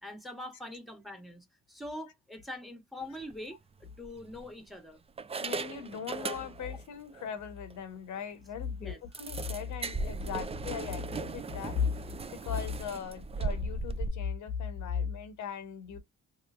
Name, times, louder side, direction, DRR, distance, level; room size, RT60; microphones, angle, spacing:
voice 1, 0.0-3.6 4.0-5.0 8.7-9.0, left 1 dB, ahead, 1.2 m, -43 dB
sound 1, 3.1-3.3 4.0-4.7 5.2-6.8 7.1-7.3 7.7-7.8 8.1-8.2 9.1-14.1, right 4 dB, 20° right, 0.4 m, -38 dB
voice 2, 5.4-11.9 12.3-16.0, left 7 dB, 70° left, 0.9 m, -37 dB
3.1 x 3.0 x 2.4 m
cardioid pair, 90°, 30 cm